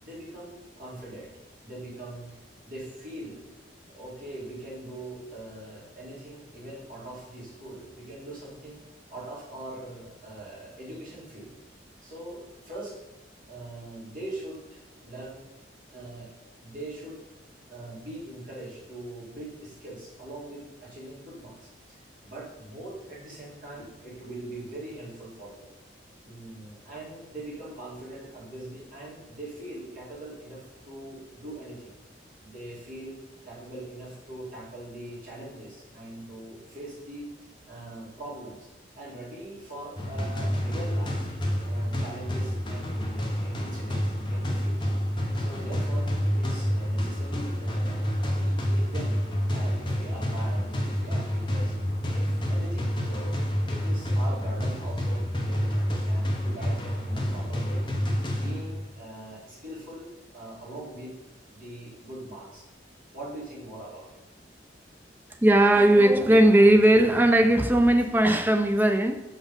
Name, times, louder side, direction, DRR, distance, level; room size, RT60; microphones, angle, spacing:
voice 1, 0.0-1.3 1.6-3.4 3.9-8.8 9.1-11.5 12.0-13.0 13.5-15.4 15.9-16.3 16.6-17.2 17.7-25.7 26.2-32.0 32.4-37.3 37.7-38.7 38.9-41.3 41.6-44.9 45.4-49.2 49.5-51.8 52.1-53.4 53.7-57.8 58.2-61.1 61.5-62.7 63.1-64.1, right 1 dB, 50° right, 2.3 m, -42 dB
sound 1, 40.0-58.9, equal, 25° left, 0.7 m, -28 dB
voice 2, 65.4-69.2, right 1 dB, 10° right, 0.4 m, -18 dB
6.0 x 4.1 x 5.2 m
head